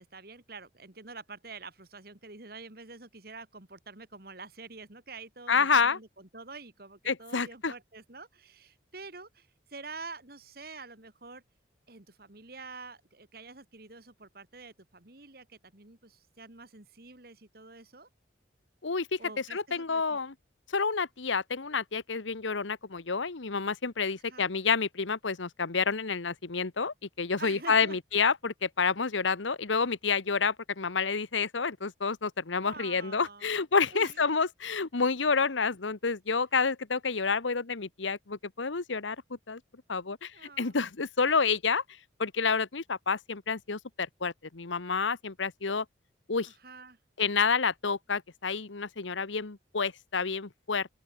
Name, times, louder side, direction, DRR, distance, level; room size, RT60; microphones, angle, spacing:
voice 1, 0.0-11.4 11.9-18.1 19.2-20.2 24.3-24.5 27.4-28.0 32.6-33.5 33.9-34.2 40.3-40.8 46.5-47.0, right 3 dB, 50° right, 2.4 m, -47 dB
voice 2, 5.5-6.0 7.1-7.7 18.8-19.2 19.5-20.3 20.7-39.2 39.5-39.6 39.9-41.8 42.2-45.8 46.3-46.5 47.2-50.9, left 5 dB, 85° left, 1.2 m, -29 dB
open air
head